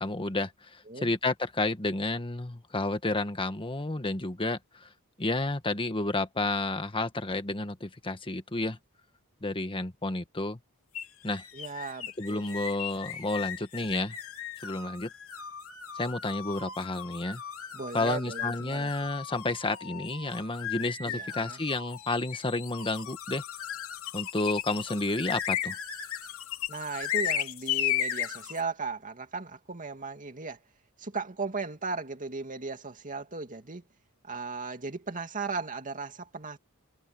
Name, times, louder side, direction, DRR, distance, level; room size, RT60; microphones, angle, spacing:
voice 1, 0.0-4.9 5.2-8.8 9.4-10.6 11.2-11.4 12.2-14.2 14.6-15.1 15.9-17.4 17.9-23.4 24.1-25.7, left 2 dB, 25° left, 1.5 m, -31 dB
sound 1, 10.9-28.6, left 9 dB, 70° left, 3.6 m, -36 dB
voice 2, 11.5-12.6 17.7-19.2 21.0-21.6 26.7-30.6 31.0-33.8 34.2-36.6, right 4 dB, 35° right, 2.5 m, -37 dB
open air
head